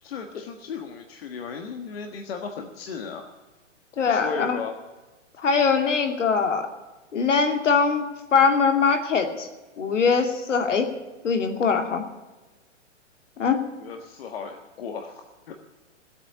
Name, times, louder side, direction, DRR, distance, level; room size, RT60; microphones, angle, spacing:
voice 1, 0.0-3.2 4.0-4.8 13.8-15.5, left 5 dB, 50° left, 4 dB, 1.6 m, -35 dB
voice 2, 4.0-4.6 5.4-6.7 7.1-8.0 8.3-9.5 9.8-10.9 11.2-12.0 13.4-13.6, left 5 dB, 75° left, 5 dB, 2.7 m, -22 dB
17.0 x 8.7 x 9.7 m, 1.2 s
hypercardioid pair, 165°, 37 cm